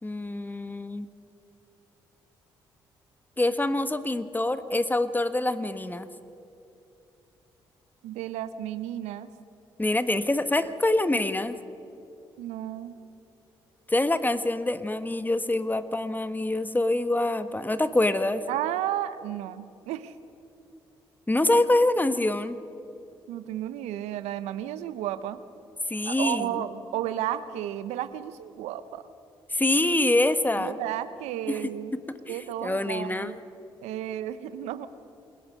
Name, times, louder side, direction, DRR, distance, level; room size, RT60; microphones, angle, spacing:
voice 1, 0.0-1.1 3.4-6.1 9.8-11.6 13.9-18.4 21.3-22.6 25.9-26.6 29.5-30.8 31.5-33.3, left 2 dB, 15° left, 11 dB, 1.5 m, -25 dB
voice 2, 8.0-9.3 12.4-13.0 18.5-20.1 23.3-25.4 26.0-29.0 30.5-31.9 32.3-33.3 33.8-34.9, right 12 dB, 75° right, 13 dB, 0.9 m, -33 dB
28.5 x 20.5 x 5.5 m, 2.9 s
hypercardioid pair, 45°, 11 cm